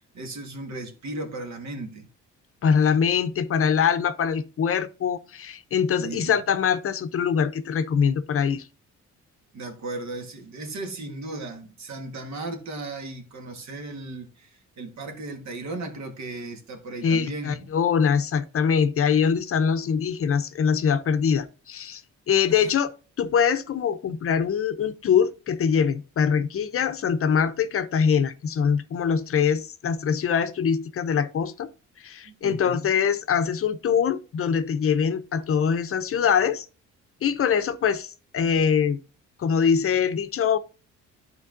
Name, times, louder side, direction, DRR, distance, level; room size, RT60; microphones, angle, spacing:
voice 1, 0.1-2.1 6.0-6.3 9.5-17.7 22.5-22.7 32.2-32.9, right 2 dB, 65° right, 1.5 m, -36 dB
voice 2, 2.6-8.6 17.0-22.0 22.3-31.7 32.0-36.7 37.2-39.0 39.4-40.6, left 7 dB, 50° left, 0.6 m, -23 dB
11.0 x 4.5 x 2.6 m
cardioid pair, 90°, 30 cm